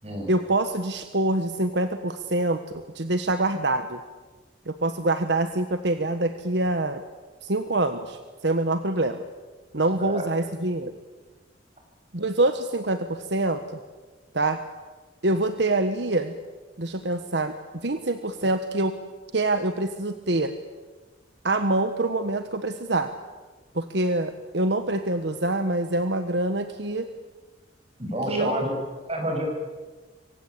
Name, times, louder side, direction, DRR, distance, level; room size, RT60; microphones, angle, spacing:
voice 1, 0.3-4.0 4.7-7.0 7.4-9.2 9.7-10.9 12.1-13.6 14.3-14.6 15.2-16.4 16.8-17.5 17.8-18.9 19.3-20.5 21.4-23.1 23.7-27.1 28.3-28.6, right 2 dB, 65° right, 9 dB, 1.4 m, -25 dB
voice 2, 28.0-28.7 29.0-29.5, equal, 35° right, 2 dB, 7.9 m, -28 dB
27.5 x 24.0 x 8.6 m, 1.3 s
head